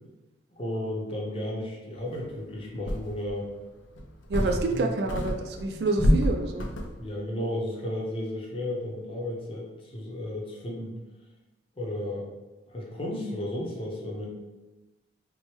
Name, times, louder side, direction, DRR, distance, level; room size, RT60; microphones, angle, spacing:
voice 1, 0.5-3.5 4.7-5.0 7.0-11.0 11.8-12.3 12.7-14.3, left 1 dB, 30° left, -3 dB, 0.7 m, -33 dB
sound 1, 2.2-2.3 2.8-3.4 3.9-4.8 5.1-7.1, equal, 90° left, 0.5 m, -27 dB
voice 2, 4.3-6.7, right 3 dB, 60° right, 4 dB, 0.4 m, -28 dB
4.4 x 2.1 x 3.0 m, 1.1 s
head